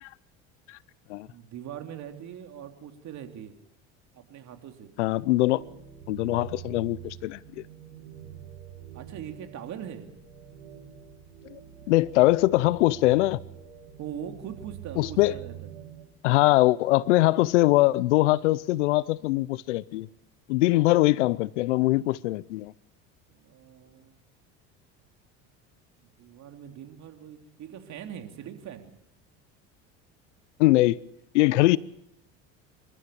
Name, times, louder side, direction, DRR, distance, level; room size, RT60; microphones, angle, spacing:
voice 1, 1.3-3.6 4.1-4.9 8.9-10.1 14.0-15.7 23.3-24.2 26.0-28.9, right 9 dB, 55° right, 3.3 m, -41 dB
voice 2, 5.0-5.6 6.1-7.4 11.5-11.6 11.9-13.4 15.0-15.3 16.2-20.1 20.5-22.7 30.6-31.0 31.3-31.8, left 18 dB, 85° left, 0.7 m, -22 dB
sound 1, 5.5-16.0, right 10 dB, 90° right, 6.0 m, -45 dB
28.0 x 13.5 x 7.0 m
supercardioid pair, 85°, 35 cm